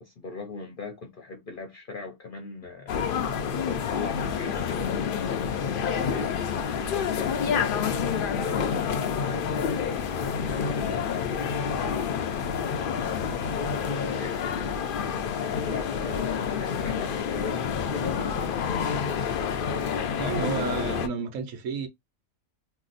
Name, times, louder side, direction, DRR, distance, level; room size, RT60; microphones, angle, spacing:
voice 1, 0.0-3.0 3.4-5.1 5.6-7.7 8.3-11.8 12.1-12.7 13.3-14.7 15.1-19.2, left 4 dB, 50° left, 0.7 m, -40 dB
sound 1, 2.9-21.1, left 7 dB, 85° left, 0.4 m, -28 dB
voice 2, 20.2-21.9, right 5 dB, 70° right, 1.0 m, -31 dB
2.8 x 2.0 x 3.8 m
omnidirectional pair, 1.5 m